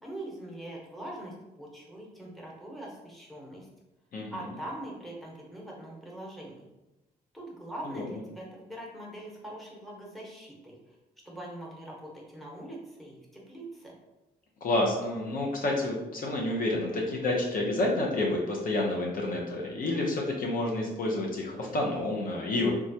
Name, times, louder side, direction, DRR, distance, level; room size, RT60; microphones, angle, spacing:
voice 1, 0.0-3.7 4.3-6.7 7.3-11.0 11.2-13.9, right 1 dB, ahead, -3 dB, 1.0 m, -42 dB
voice 2, 14.6-22.7, left 2 dB, 55° left, -1 dB, 0.6 m, -29 dB
3.1 x 2.3 x 2.7 m, 1.0 s
supercardioid pair, 65°, 17 cm